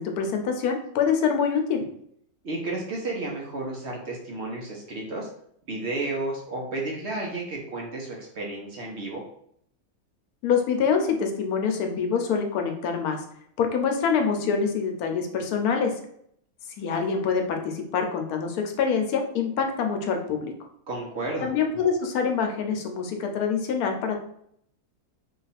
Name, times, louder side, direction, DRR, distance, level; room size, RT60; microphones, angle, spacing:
voice 1, 0.0-1.9 10.4-13.2 13.6-16.0 16.8-20.5 21.4-24.2, left 6 dB, 85° left, 4 dB, 1.1 m, -25 dB
voice 2, 2.4-5.3 5.7-9.2 20.9-21.5, right 2 dB, 55° right, -2 dB, 0.9 m, -32 dB
3.0 x 2.4 x 4.0 m, 0.68 s
omnidirectional pair, 1.6 m